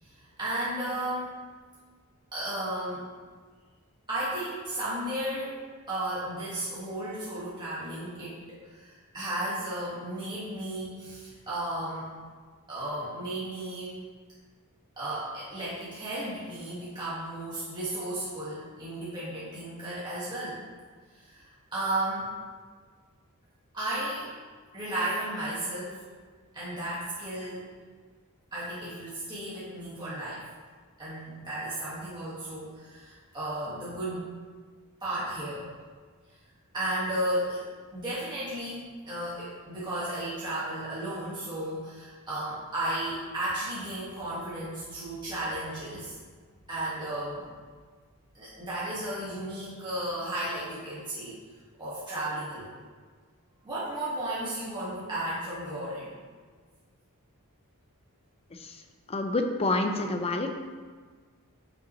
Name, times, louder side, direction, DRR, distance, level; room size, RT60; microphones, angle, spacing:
voice 1, 0.0-1.4 2.3-3.1 4.1-5.6 5.9-12.1 12.7-14.0 15.0-20.6 21.1-22.3 23.7-24.3 24.7-26.0 26.5-27.7 28.5-30.5 31.0-34.3 35.0-35.7 36.3-36.4 36.7-37.6 37.9-46.2 46.7-47.5 48.3-51.4 51.8-52.7 53.6-56.1, right 1 dB, 20° right, -10 dB, 1.7 m, -34 dB
voice 2, 59.1-60.5, left 2 dB, 25° left, 5 dB, 0.6 m, -27 dB
9.2 x 5.4 x 3.1 m, 1.5 s
head